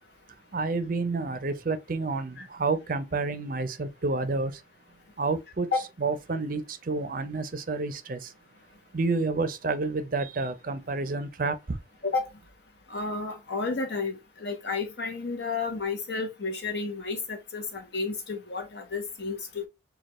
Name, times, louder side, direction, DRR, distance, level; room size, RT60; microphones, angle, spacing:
voice 1, 0.5-4.6 5.2-5.7 6.0-8.3 8.9-11.8, right 3 dB, 45° right, 0.5 m, -29 dB
voice 2, 12.9-19.7, left 4 dB, 60° left, 0.9 m, -31 dB
6.4 x 2.3 x 3.0 m
head